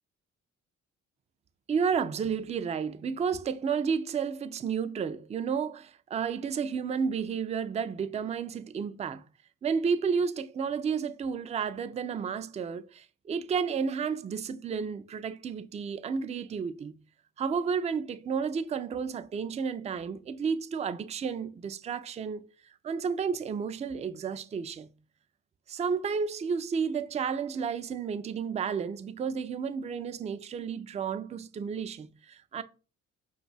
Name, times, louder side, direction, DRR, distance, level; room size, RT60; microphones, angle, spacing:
voice 1, 1.7-9.2 9.6-17.0 17.4-22.4 22.8-24.9 25.7-32.6, right 6 dB, 25° right, 0.3 m, -31 dB
4.7 x 2.4 x 3.9 m
cardioid pair, 90°, 30 cm